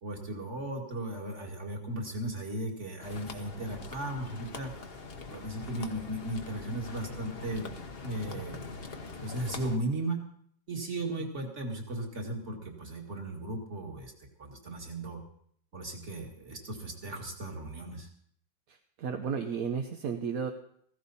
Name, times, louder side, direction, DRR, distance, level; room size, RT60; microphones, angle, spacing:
voice 1, 0.0-4.7 5.3-7.7 8.0-8.6 9.2-10.2 10.7-14.1 14.4-15.2 15.7-18.1, right 1 dB, 40° right, 2 dB, 2.3 m, -36 dB
sound 1, 3.0-9.8, left 4 dB, 35° left, 1.1 m, -43 dB
voice 2, 18.7-20.5, right 6 dB, 55° right, 4 dB, 1.2 m, -33 dB
15.5 x 15.5 x 4.2 m, 0.64 s
omnidirectional pair, 2.0 m